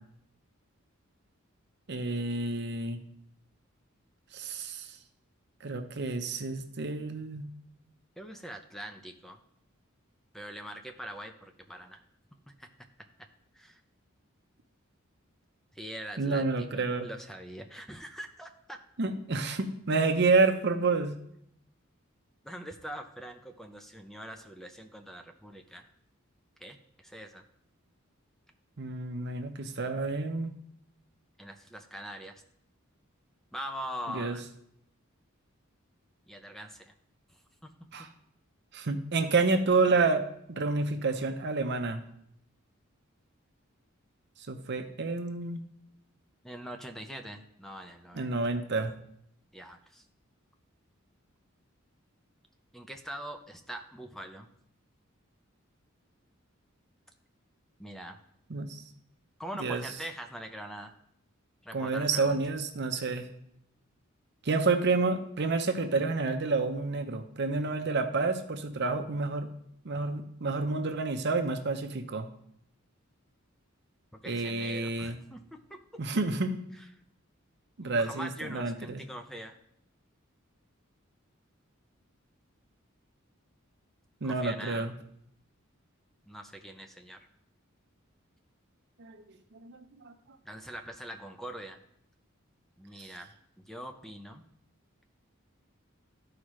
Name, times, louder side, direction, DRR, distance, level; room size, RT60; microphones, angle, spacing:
voice 1, 1.9-3.0 4.3-4.9 5.6-7.5 16.2-17.1 19.0-21.1 28.8-30.5 34.1-34.4 37.9-38.1 38.7-42.0 44.5-45.6 48.2-48.9 58.5-58.8 59.6-59.8 61.7-63.3 64.4-69.5 69.8-72.3 74.3-75.2 76.0-76.5 77.8-79.0 84.2-84.9 89.0-89.2 89.5-90.1, right 3 dB, 55° right, 7 dB, 0.8 m, -29 dB
voice 2, 8.2-9.4 10.3-12.0 12.6-12.7 13.5-13.8 15.7-18.8 22.4-25.9 26.6-27.4 31.4-32.4 33.5-34.4 36.3-36.9 46.4-48.4 49.5-50.0 52.7-54.5 57.8-58.2 59.4-60.9 61.6-62.4 74.1-75.8 76.8-76.9 77.8-79.6 84.2-84.9 86.2-87.2 90.4-91.8 92.8-93.3 93.6-94.4, equal, ahead, 5 dB, 0.6 m, -43 dB
13.0 x 4.9 x 3.1 m, 0.72 s
head